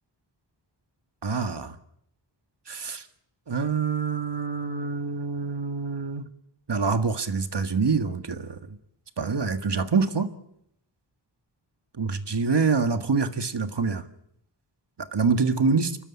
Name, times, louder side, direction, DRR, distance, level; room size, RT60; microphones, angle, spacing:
voice 1, 1.2-1.7 2.7-3.0 3.5-6.2 6.7-8.6 9.2-10.3 12.0-14.0 15.1-16.0, right 4 dB, 65° right, 1.7 m, -25 dB
28.5 x 12.5 x 9.8 m
wide cardioid pair, 70°, 45 cm